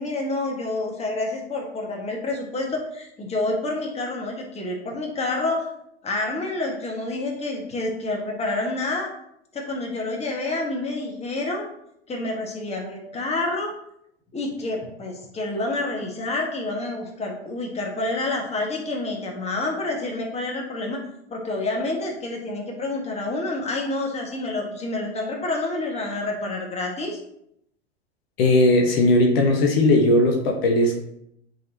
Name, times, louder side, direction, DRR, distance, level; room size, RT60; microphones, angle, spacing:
voice 1, 0.0-5.7 6.0-9.1 9.5-11.7 12.1-13.7 14.3-21.0 21.3-27.2, left 2 dB, 20° left, 0 dB, 1.6 m, -28 dB
voice 2, 28.4-31.0, left 1 dB, 60° left, 2 dB, 1.2 m, -18 dB
9.1 x 4.2 x 2.8 m, 0.75 s
hypercardioid pair, 95°, 33 cm